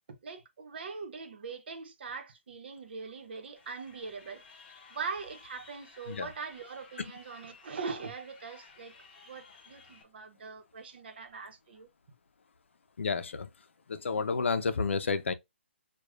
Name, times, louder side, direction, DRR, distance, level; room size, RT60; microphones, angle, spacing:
voice 1, 0.2-4.4 4.9-8.9 9.3-11.9, right 5 dB, 55° right, 0.9 m, -41 dB
Crowd, 3.6-10.0, left 4 dB, 40° left, 1.1 m, -56 dB
voice 2, 13.0-13.5 13.9-15.3, left 4 dB, 75° left, 0.6 m, -30 dB
6.3 x 2.3 x 2.4 m
hypercardioid pair, 155°, 7 cm